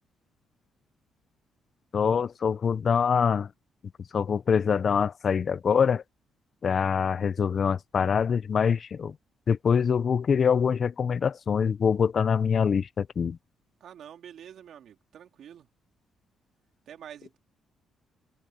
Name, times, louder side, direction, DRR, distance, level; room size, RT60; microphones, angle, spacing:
voice 1, 1.9-3.5 4.1-6.0 6.6-9.1 9.5-13.4, left 6 dB, 45° left, 0.7 m, -24 dB
voice 2, 13.8-15.7 16.9-17.4, right 9 dB, 65° right, 3.4 m, -47 dB
cardioid pair, 90°, 0 cm